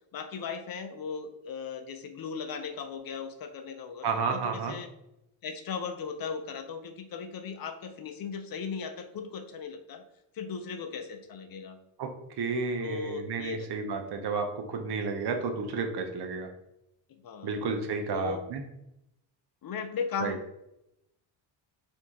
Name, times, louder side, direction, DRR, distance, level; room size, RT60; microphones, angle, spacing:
voice 1, 0.1-4.9 5.4-10.0 10.3-11.8 12.8-13.7 17.2-17.6 18.1-18.4 19.6-20.4, left 5 dB, 45° left, 7 dB, 0.6 m, -37 dB
voice 2, 4.0-4.8 12.0-12.1 12.4-16.5 17.4-18.6 20.2-20.3, right 4 dB, 55° right, 5 dB, 0.8 m, -31 dB
4.5 x 2.7 x 3.7 m, 0.84 s
cardioid pair, 105°, 48 cm